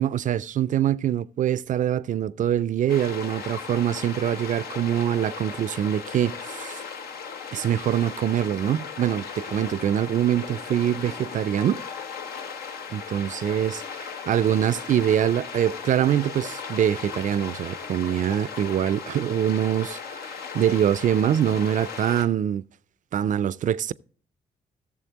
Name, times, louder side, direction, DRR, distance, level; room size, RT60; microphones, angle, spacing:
voice 1, 0.0-6.8 7.5-11.8 12.9-22.6 23.1-23.9, right 10 dB, 55° right, 0.4 m, -24 dB
sound 1, 2.9-22.3, left 6 dB, 75° left, 0.8 m, -37 dB
15.0 x 6.9 x 2.9 m
hypercardioid pair, 45°, 16 cm